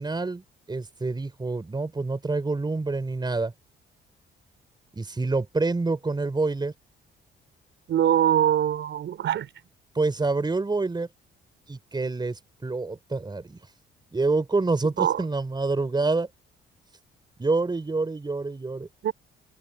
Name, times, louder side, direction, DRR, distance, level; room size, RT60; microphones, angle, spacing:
voice 1, 0.0-3.5 4.9-6.7 9.9-11.1 11.7-13.6 14.1-16.3 17.4-18.9, right 3 dB, 20° right, 4.7 m, -27 dB
voice 2, 7.9-9.5 15.0-15.2 19.0-19.1, right 10 dB, 70° right, 5.5 m, -23 dB
open air
cardioid pair, 90°, 20 cm